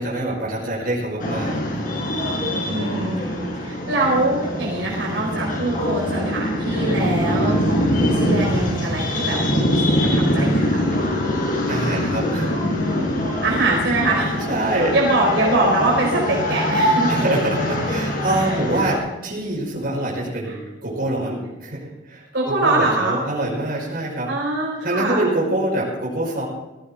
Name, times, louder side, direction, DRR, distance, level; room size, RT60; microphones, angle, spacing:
voice 1, 0.0-1.6 7.3-7.6 11.7-12.6 14.5-15.0 17.1-24.3 24.8-26.4, right 1 dB, 50° right, -4 dB, 5.6 m, -25 dB
sound 1, 1.2-19.0, equal, 45° left, 5.2 m, -23 dB
voice 2, 2.7-11.2 13.4-14.4 14.9-17.2 18.3-18.6 20.5-20.6 22.3-23.2 24.3-25.3, right 2 dB, 70° right, -2 dB, 4.3 m, -23 dB
18.0 x 15.0 x 3.8 m, 1.1 s
head